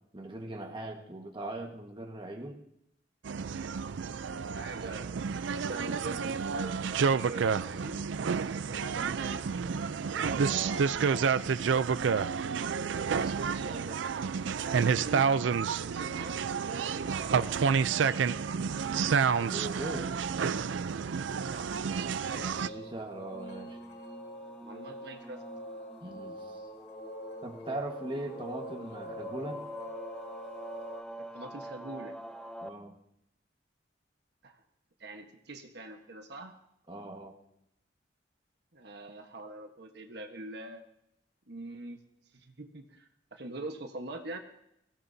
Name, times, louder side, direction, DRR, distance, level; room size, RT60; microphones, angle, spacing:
voice 1, 0.1-2.6 8.6-8.9 10.1-11.7 19.5-20.2 22.4-23.8 26.0-26.7 27.4-29.6 32.6-32.9 36.9-37.3, right 2 dB, 25° right, 2 dB, 1.5 m, -40 dB
sound 1, 3.2-22.7, right 6 dB, 85° right, 0.4 m, -30 dB
voice 2, 4.5-8.1 8.5-9.7 13.2-14.0 14.6-15.4 15.7-17.8 21.4-21.9 22.2-22.9 24.6-25.4 31.2-32.2 34.4-34.6 35.0-36.5 38.7-40.8 41.5-42.0 42.3-44.4, right 2 dB, 60° right, 4 dB, 1.2 m, -44 dB
sound 2, 22.4-32.7, equal, 5° left, 0.5 m, -46 dB
sound 3, 22.6-31.0, equal, 75° left, 1.8 m, -45 dB
22.0 x 16.5 x 2.7 m, 0.79 s
head